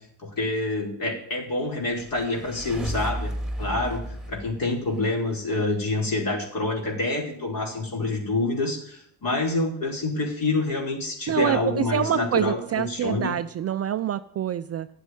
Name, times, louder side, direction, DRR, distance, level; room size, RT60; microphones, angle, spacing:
voice 1, 0.2-3.3 3.6-4.0 4.3-13.3, left 2 dB, 45° left, 0 dB, 5.1 m, -27 dB
sound 1, 1.8-5.4, right 1 dB, ahead, 2.2 m, -34 dB
voice 2, 11.3-14.9, right 10 dB, 30° right, 12 dB, 0.5 m, -26 dB
11.0 x 8.1 x 9.2 m, 0.67 s
hypercardioid pair, 60°, 48 cm